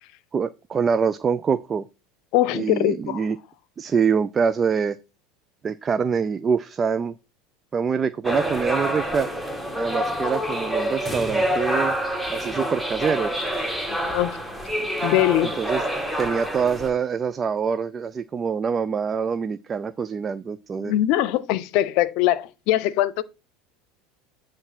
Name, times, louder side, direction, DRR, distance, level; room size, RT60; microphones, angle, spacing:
voice 1, 0.3-1.8 2.5-3.4 3.8-5.0 5.6-7.1 7.7-9.3 9.7-12.0 12.3-13.3 15.6-15.8 16.2-20.9, right 6 dB, 30° right, 0.4 m, -25 dB
voice 2, 2.3-3.2 13.9-14.4 15.0-15.5 20.8-23.2, left 14 dB, 65° left, 0.7 m, -22 dB
sound 1, 8.2-16.9, right 1 dB, ahead, 1.9 m, -27 dB
9.5 x 3.2 x 6.0 m
supercardioid pair, 100°, 0 cm